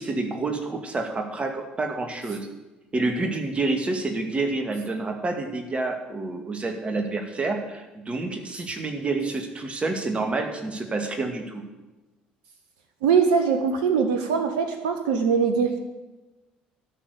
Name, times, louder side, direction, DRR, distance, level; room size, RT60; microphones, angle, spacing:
voice 1, 0.0-2.5 2.9-11.6, right 3 dB, 25° right, 4 dB, 2.2 m, -28 dB
voice 2, 13.0-15.8, right 6 dB, 65° right, 6 dB, 1.0 m, -22 dB
12.5 x 6.7 x 8.4 m, 1.1 s
figure-of-eight pair, 50°, 4 cm